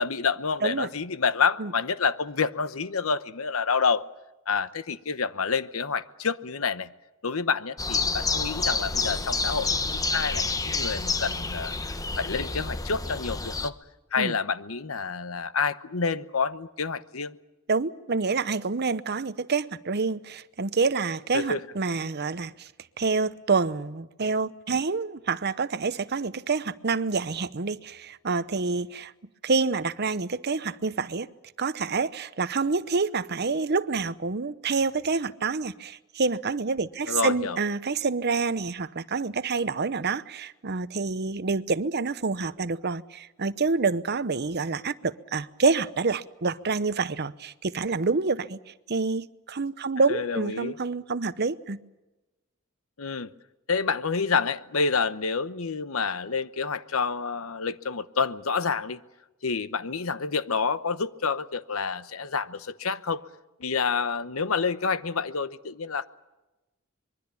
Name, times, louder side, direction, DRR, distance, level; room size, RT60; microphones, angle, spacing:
voice 1, 0.0-4.0 4.5-6.9 7.2-13.8 14.1-17.3 21.3-21.6 37.1-37.6 50.1-50.8 53.0-53.3 53.7-59.0 59.4-63.2 63.6-66.1, left 5 dB, 80° left, 1.0 m, -28 dB
sound 1, 7.8-13.7, left 3 dB, 15° left, 0.9 m, -29 dB
voice 2, 17.7-22.7 23.0-29.1 29.4-31.3 31.6-51.8, right 4 dB, 50° right, 0.8 m, -27 dB
25.5 x 22.5 x 7.0 m
head